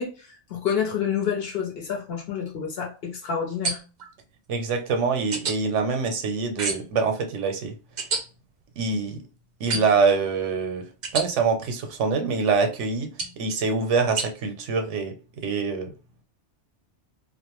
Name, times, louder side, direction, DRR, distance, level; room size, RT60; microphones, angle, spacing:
voice 1, 0.0-3.8, left 7 dB, 60° left, 0 dB, 0.9 m, -28 dB
sound 1, 3.6-4.1 5.3-5.6 6.6-7.0 8.0-8.2 9.7-10.1 11.0-11.3 13.2-13.4 14.2-14.3, right 4 dB, 55° right, 0.5 m, -29 dB
voice 2, 4.5-7.7 8.8-9.2 9.6-10.8 11.1-13.1 13.4-15.1 15.4-15.9, right 4 dB, 80° right, 6 dB, 0.9 m, -24 dB
2.4 x 2.0 x 2.9 m, 0.33 s
omnidirectional pair, 1.2 m